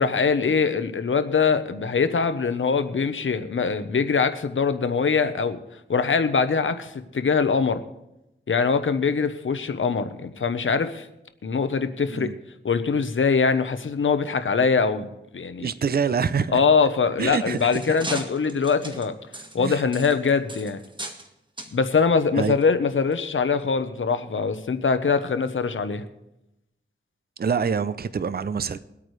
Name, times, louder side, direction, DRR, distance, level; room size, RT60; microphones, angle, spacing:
voice 1, 0.0-5.6 5.9-7.8 8.5-11.1 11.4-12.3 12.6-15.1 15.3-15.7 16.5-19.1 19.5-20.8 21.7-26.0, left 5 dB, 70° left, 10 dB, 1.0 m, -23 dB
voice 2, 15.6-16.6 17.2-18.0 19.6-19.9 22.3-22.6 27.4-28.8, right 6 dB, 50° right, 14 dB, 0.5 m, -26 dB
sound 1, 17.0-21.3 21.6-21.8 22.5-22.6 23.1-23.2, right 1 dB, 25° right, 1.6 m, -37 dB
22.5 x 8.7 x 3.3 m, 0.90 s
wide cardioid pair, 60°, 21 cm